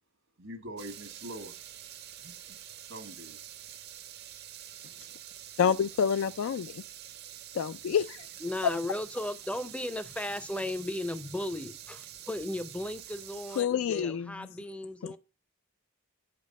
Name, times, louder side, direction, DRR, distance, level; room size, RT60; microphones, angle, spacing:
voice 1, 0.4-1.6 2.2-2.6 2.9-3.4, right 1 dB, 75° right, 1.5 m, -43 dB
sound 1, 0.8-13.6, right 11 dB, 50° right, 0.6 m, -47 dB
voice 2, 5.6-6.8 7.5-8.1 13.6-14.3 15.0-15.2, left 7 dB, 75° left, 0.3 m, -28 dB
voice 3, 8.4-15.2, left 1 dB, 5° left, 0.5 m, -36 dB
8.9 x 5.2 x 5.3 m
head